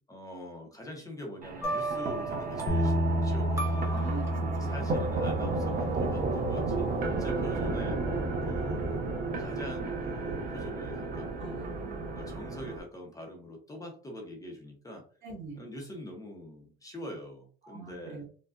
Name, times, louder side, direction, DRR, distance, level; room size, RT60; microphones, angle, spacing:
voice 1, 0.1-3.9 4.6-8.0 8.5-9.0 9.4-11.7 12.1-15.0 15.6-18.2, equal, 15° left, 2 dB, 0.9 m, -44 dB
sound 1, 1.4-12.8, right 3 dB, 45° right, 0.8 m, -33 dB
sound 2, 1.6-4.8, right 2 dB, 15° right, 0.8 m, -36 dB
sound 3, 2.7-8.9, equal, 45° left, 0.6 m, -32 dB
voice 2, 3.9-4.9 7.1-7.7 11.4-12.2 15.2-15.6 17.6-18.2, right 4 dB, 65° right, 0 dB, 1.7 m, -43 dB
4.8 x 2.4 x 2.5 m, 0.41 s
cardioid pair, 140°, 21 cm